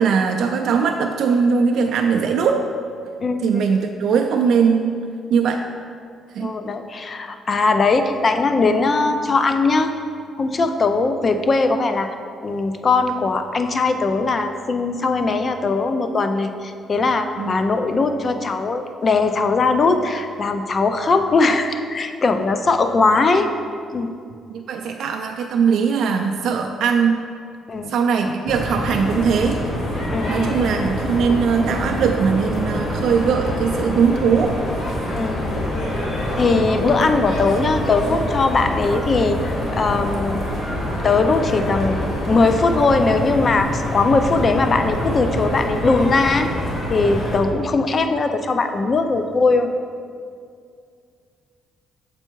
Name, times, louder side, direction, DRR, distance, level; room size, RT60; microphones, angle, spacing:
voice 1, 0.0-2.6 3.4-5.0 5.3-5.6 6.3-6.5 17.4-17.6 24.5-27.2 27.9-29.6 30.3-34.5, right 6 dB, 65° right, 3 dB, 0.3 m, -20 dB
voice 2, 3.2-3.6 6.4-9.9 10.4-12.1 12.4-23.5 23.9-24.1 27.7-27.9 30.1-30.6 35.1-35.6 36.3-40.4 41.0-42.0 42.3-46.5 46.9-49.7, left 3 dB, 30° left, 7 dB, 0.4 m, -20 dB
sound 1, 28.5-47.4, left 1 dB, 50° left, 1.4 m, -25 dB
6.7 x 4.4 x 4.5 m, 2.3 s
cardioid pair, 155°, 0 cm